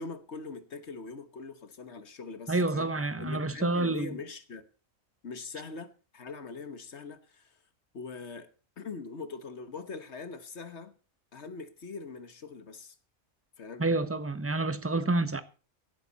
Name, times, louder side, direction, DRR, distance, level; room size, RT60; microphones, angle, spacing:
voice 1, 0.0-2.9 3.2-4.6 5.2-7.6 7.9-8.5 8.8-10.9 11.3-12.9 13.6-13.8, left 4 dB, 55° left, 1.6 m, -42 dB
voice 2, 2.5-4.1 13.8-15.4, right 2 dB, 10° right, 0.8 m, -28 dB
17.5 x 11.5 x 4.1 m
omnidirectional pair, 1.4 m